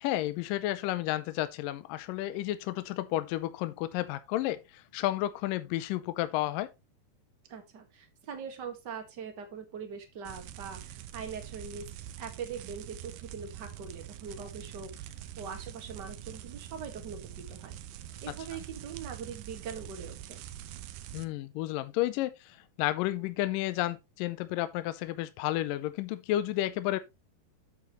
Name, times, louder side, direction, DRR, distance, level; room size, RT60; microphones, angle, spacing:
voice 1, 0.0-6.7 21.1-27.0, left 15 dB, 80° left, 2.1 m, -32 dB
voice 2, 7.5-11.9 12.2-17.8 18.2-20.4, right 6 dB, 45° right, 1.4 m, -42 dB
sound 1, 10.3-21.3, right 12 dB, 80° right, 2.3 m, -44 dB
8.5 x 8.1 x 3.1 m
omnidirectional pair, 4.3 m